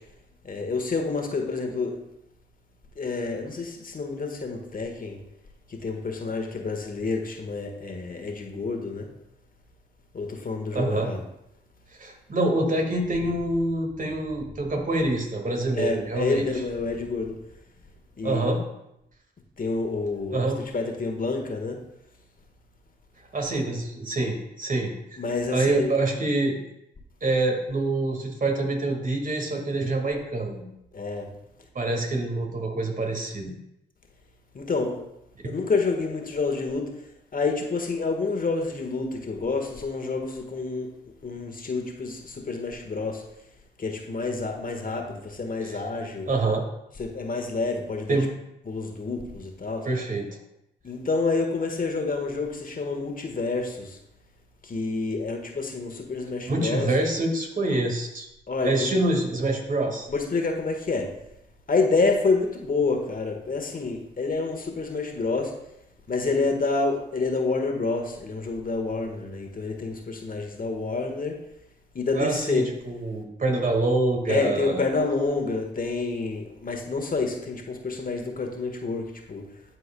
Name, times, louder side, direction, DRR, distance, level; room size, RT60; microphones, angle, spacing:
voice 1, 0.4-1.9 3.0-5.2 5.7-9.1 10.1-11.2 15.7-17.3 18.2-18.6 19.6-20.5 20.7-21.8 25.2-25.9 30.9-31.3 34.5-35.0 35.4-36.9 37.3-40.9 41.2-43.2 43.8-46.3 47.0-48.2 48.7-49.8 50.8-54.0 54.6-56.9 58.5-58.9 60.1-61.1 61.7-65.5 66.1-71.3 71.9-72.6 74.3-79.4, left 3 dB, 45° left, 3 dB, 1.4 m, -28 dB
voice 2, 10.7-11.1 12.0-16.5 18.2-18.6 20.3-20.6 23.3-26.6 27.2-30.7 31.8-33.6 35.4-35.5 45.6-45.8 46.3-46.6 48.1-48.3 49.9-50.3 56.5-58.3 58.6-60.1 72.1-74.8, right 2 dB, 45° right, 1 dB, 1.9 m, -26 dB
11.5 x 4.6 x 2.3 m, 0.84 s
supercardioid pair, 45°, 20 cm